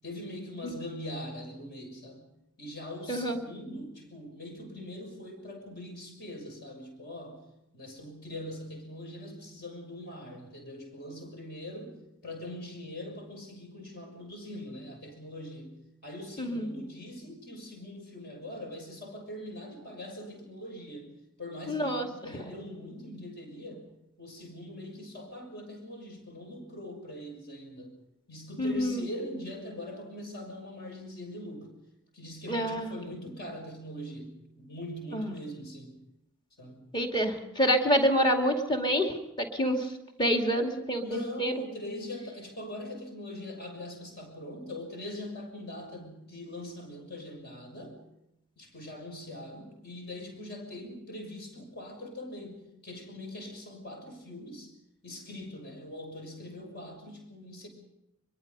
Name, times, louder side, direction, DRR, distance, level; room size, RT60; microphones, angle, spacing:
voice 1, 0.0-2.3 2.6-7.4 7.7-12.0 12.2-15.7 16.0-21.1 21.4-23.9 24.2-28.0 28.3-31.7 32.1-36.0 36.6-36.9 41.0-48.0 48.6-54.7 55.0-57.7, left 1 dB, 50° left, 3 dB, 6.4 m, -42 dB
voice 2, 3.1-3.4 16.4-16.7 21.7-22.1 22.3-22.4 28.6-29.1 32.5-32.9 35.1-35.3 36.9-39.9 40.2-41.5, equal, 20° left, 3 dB, 2.4 m, -27 dB
24.0 x 22.5 x 5.5 m, 0.85 s
head